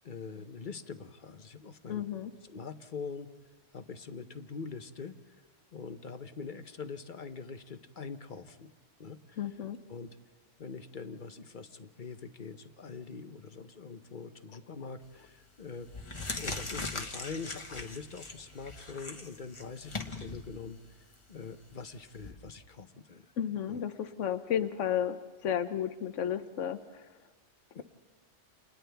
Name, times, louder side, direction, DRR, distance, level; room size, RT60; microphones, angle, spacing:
voice 1, 0.0-2.0 2.4-3.3 3.7-5.4 5.7-8.7 9.0-9.4 9.9-10.1 10.6-16.1 16.4-21.0 21.3-23.3 23.7-23.8 27.7-27.8, left 5 dB, 45° left, 9 dB, 0.9 m, -43 dB
voice 2, 1.9-2.3 9.4-9.8 23.4-25.2 25.4-27.0, left 9 dB, 85° left, 11 dB, 1.2 m, -32 dB
sound 1, 15.1-15.3 15.8-22.3, left 3 dB, 25° left, 1.3 m, -41 dB
29.5 x 28.5 x 3.4 m, 1.2 s
omnidirectional pair, 1.2 m